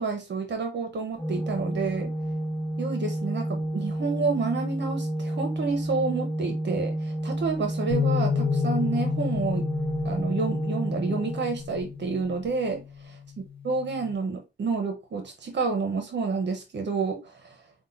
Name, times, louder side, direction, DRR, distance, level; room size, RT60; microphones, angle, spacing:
voice 1, 0.0-2.1 2.8-9.7 10.0-13.2 13.6-17.2, right 4 dB, 65° right, 1.1 m, -29 dB
Organ, 1.2-12.1, right 1 dB, 5° left, 1.5 m, -30 dB
Bass guitar, 7.9-14.2, left 8 dB, 85° left, 0.6 m, -31 dB
6.1 x 2.5 x 2.7 m
cardioid pair, 90°, 20 cm